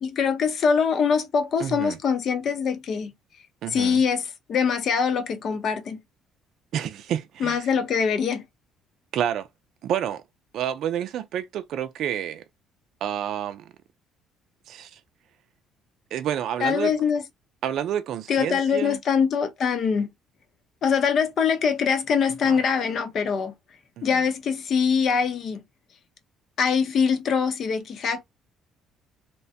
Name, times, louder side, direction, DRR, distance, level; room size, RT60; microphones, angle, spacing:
voice 1, 0.0-3.1 3.7-6.0 7.4-8.4 16.6-17.2 18.3-20.1 20.8-23.5 24.0-25.6 26.6-28.2, left 6 dB, 55° left, 0.7 m, -23 dB
voice 2, 1.6-2.0 3.6-4.0 6.7-7.7 9.1-9.5 9.8-10.2 10.5-12.4 13.0-13.7 14.7-15.0 16.1-16.9 17.6-19.0 22.4-22.6 24.0-24.2, right 10 dB, 65° right, 0.4 m, -29 dB
2.9 x 2.1 x 2.7 m
cardioid pair, 95°, 0 cm